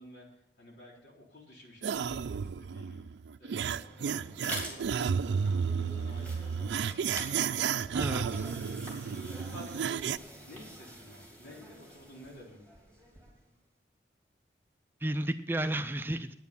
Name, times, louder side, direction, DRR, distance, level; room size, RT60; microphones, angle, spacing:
voice 1, 0.0-3.0 3.4-7.9 8.3-10.1 10.5-12.7, equal, 80° left, -3 dB, 3.9 m, -52 dB
sound 1, 1.8-10.2, right 6 dB, 90° right, 0.4 m, -32 dB
sound 2, 3.6-13.5, equal, 10° left, 2.9 m, -47 dB
voice 2, 7.9-8.5 15.0-16.3, right 1 dB, 10° right, 10 dB, 0.4 m, -32 dB
9.5 x 9.3 x 7.0 m, 0.84 s
head